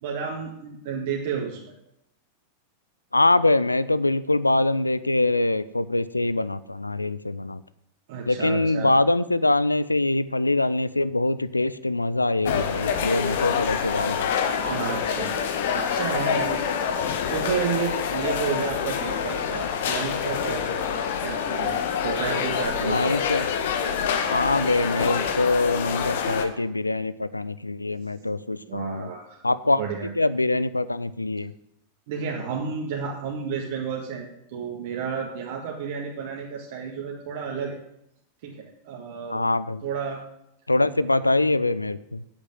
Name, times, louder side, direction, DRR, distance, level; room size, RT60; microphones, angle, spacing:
voice 1, 0.0-1.8 8.1-8.9 14.6-15.3 15.7-20.7 20.9-21.8 22.0-23.1 28.5-29.4 29.8-30.1 32.1-37.8 38.4-39.4 39.8-40.2 40.8-41.1, right 6 dB, 50° right, 0 dB, 1.8 m, -31 dB
voice 2, 3.1-7.6 8.3-14.3 22.8-23.5 24.3-29.1 29.4-29.8 30.2-31.5 39.3-39.8 40.7-42.2, left 2 dB, 85° left, 15 dB, 0.5 m, -23 dB
sound 1, 12.4-26.5, left 7 dB, 55° left, 1.4 m, -26 dB
8.8 x 8.1 x 9.2 m, 0.78 s
figure-of-eight pair, 90°, 0 cm